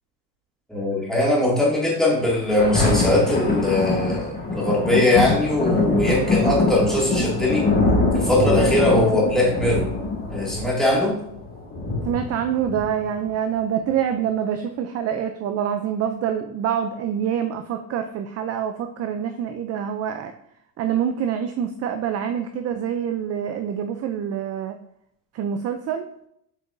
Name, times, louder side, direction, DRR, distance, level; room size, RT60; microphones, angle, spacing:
voice 1, 0.7-7.7 8.1-9.9 10.3-11.1, left 1 dB, ahead, -5 dB, 2.3 m, -20 dB
Thunder, 2.3-13.3 13.9-14.0, left 3 dB, 20° left, 1.6 m, -23 dB
voice 2, 12.0-20.3 20.8-24.8 25.3-26.1, right 8 dB, 40° right, 7 dB, 0.5 m, -26 dB
7.8 x 4.9 x 2.6 m, 0.73 s
cardioid pair, 130°, 42 cm